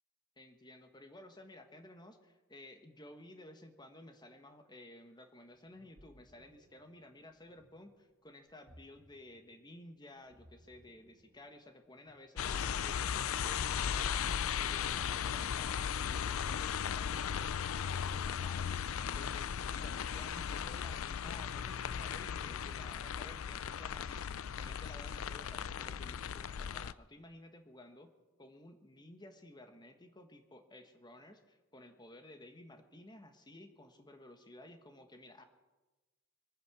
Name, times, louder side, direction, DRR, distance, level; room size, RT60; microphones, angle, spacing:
voice 1, 0.4-24.2 24.5-28.1 28.4-35.4, left 1 dB, 20° left, 6 dB, 1.4 m, -55 dB
Ocean, 5.6-16.3, equal, 55° right, 2.2 m, -64 dB
sound 1, 12.4-26.9, left 8 dB, 70° left, 0.4 m, -37 dB
24.5 x 9.5 x 6.2 m, 1.1 s
head